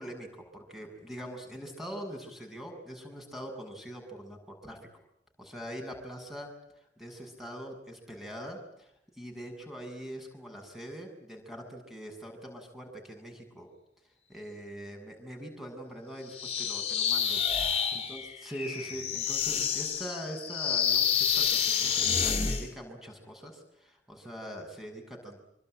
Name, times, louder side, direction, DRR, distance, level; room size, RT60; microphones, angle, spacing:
voice 1, 0.0-4.8 5.4-13.7 14.3-25.4, equal, ahead, 3 dB, 7.2 m, -43 dB
sound 1, 16.3-22.7, left 7 dB, 30° left, 4.1 m, -28 dB
26.5 x 24.5 x 9.1 m, 0.79 s
head